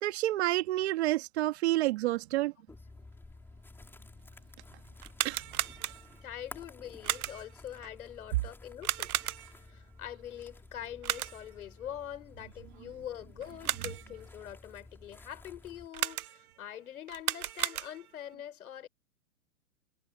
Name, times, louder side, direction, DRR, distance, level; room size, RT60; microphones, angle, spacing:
voice 1, 0.0-2.5 5.2-5.5, right 16 dB, 45° right, 2.5 m, -29 dB
sound 1, 2.7-15.9, left 2 dB, 5° left, 5.3 m, -53 dB
sound 2, 5.0-6.3 7.0-7.6 8.8-9.7 11.0-11.6 13.4-14.2 15.9-16.6 17.1-18.2, right 13 dB, 75° right, 0.8 m, -35 dB
voice 2, 6.2-9.3 9.7-18.9, left 10 dB, 70° left, 4.2 m, -44 dB
hypercardioid pair, 150°, 44 cm